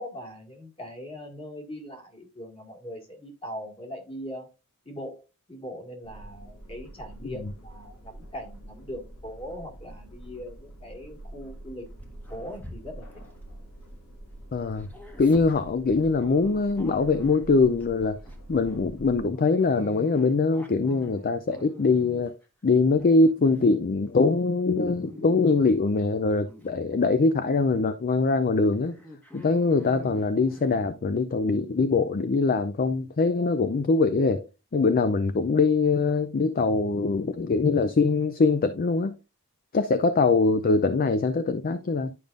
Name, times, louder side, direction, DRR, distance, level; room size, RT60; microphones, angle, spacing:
voice 1, 0.0-4.5 4.9-11.9 12.3-13.2, equal, 25° left, 2.0 m, -40 dB
sound 1, 6.0-19.2, right 1 dB, 75° left, 1.9 m, -46 dB
Dog, 11.9-14.3 14.5-17.9 18.3-18.5 19.3-22.4 22.9-23.6 24.0-24.4 24.8-26.0 26.4-26.7 27.3-27.4 27.8-27.9 28.5-30.8, left 1 dB, 10° left, 1.2 m, -46 dB
voice 2, 14.5-14.9 15.2-18.2 18.5-22.3 22.6-28.9 29.3-34.4 34.7-39.1 39.7-42.1, left 3 dB, 40° left, 0.4 m, -23 dB
11.0 x 5.1 x 2.5 m
head